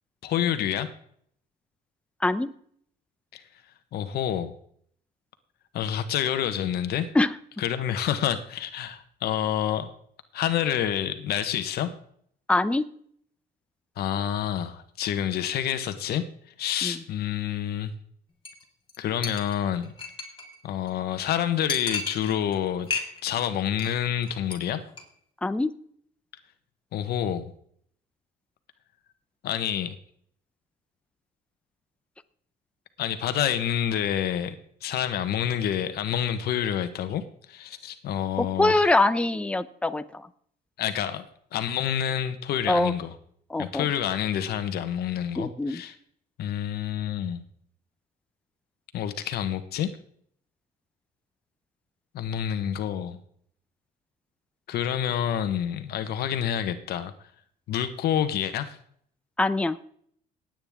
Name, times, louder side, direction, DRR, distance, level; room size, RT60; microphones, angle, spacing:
voice 1, 0.2-0.9 3.3-3.4 3.9-4.5 5.7-7.1 7.6-9.9 10.3-11.9 14.0-16.2 16.6-17.9 19.0-19.9 20.6-22.9 23.2-24.8 26.9-27.5 29.4-30.0 33.0-34.6 34.8-37.2 37.5-38.9 40.8-41.2 41.5-43.1 43.6-45.9 46.4-47.4 48.9-49.9 52.1-53.2 54.7-57.1 57.7-58.8, left 10 dB, 70° left, 10 dB, 1.2 m, -28 dB
voice 2, 12.5-12.9 16.8-17.0 25.4-25.7 38.4-40.3 42.7-42.9 43.5-43.9 45.4-45.8 59.4-59.8, left 2 dB, 5° left, 11 dB, 0.7 m, -24 dB
Chink clink, 18.4-18.6 18.9-19.0 19.2-20.6 20.9-21.0 21.2-21.3 21.7-22.6 22.9-23.4 23.7-24.0 24.2-24.6 24.9-25.0, left 4 dB, 30° left, 3.5 m, -34 dB
17.5 x 9.0 x 3.6 m, 0.62 s
cardioid pair, 110°, 17 cm